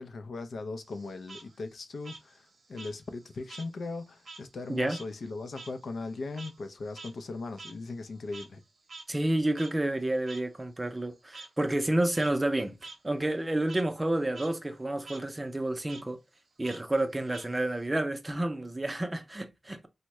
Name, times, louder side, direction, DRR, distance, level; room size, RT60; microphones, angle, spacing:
voice 1, 0.0-8.6, left 3 dB, 75° left, 0.4 m, -39 dB
Frog, 0.8-3.7 4.0-8.6 8.9-9.0 9.6-9.7 10.3-10.4 11.3-11.5 12.0-12.3 12.8-13.0 13.3-13.8 14.2-14.5 14.8-15.2 15.9-16.0 16.6-17.9, right 3 dB, 70° right, 0.7 m, -47 dB
voice 2, 9.1-12.8 13.0-16.2 16.6-19.9, right 1 dB, 20° right, 0.5 m, -30 dB
3.4 x 2.1 x 2.9 m
wide cardioid pair, 75°, 0 cm